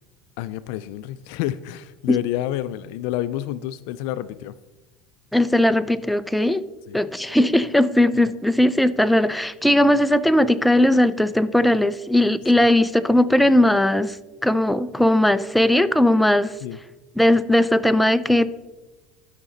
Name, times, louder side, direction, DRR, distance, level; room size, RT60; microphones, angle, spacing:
voice 1, 0.4-4.5 6.9-7.0 12.5-12.7 16.6-16.8, left 13 dB, 75° left, 15 dB, 0.3 m, -29 dB
voice 2, 5.3-6.6 6.9-14.2 14.4-16.5 17.2-18.5, left 1 dB, 5° left, 13 dB, 0.4 m, -18 dB
12.5 x 5.9 x 3.9 m, 1.1 s
supercardioid pair, 120°, 0 cm